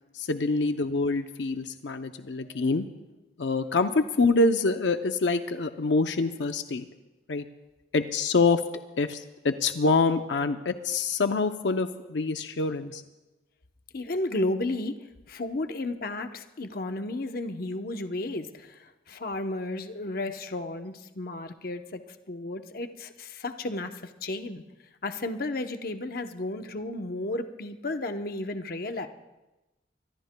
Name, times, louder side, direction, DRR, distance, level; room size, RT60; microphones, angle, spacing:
voice 1, 0.1-2.9 3.4-6.9 7.3-7.5 7.9-8.7 9.0-13.0, left 3 dB, 85° left, 8 dB, 0.6 m, -26 dB
voice 2, 13.9-15.0 15.3-22.0 22.3-24.6 25.0-29.1, left 2 dB, 55° left, 6 dB, 0.9 m, -33 dB
25.0 x 22.5 x 2.3 m, 1.1 s
head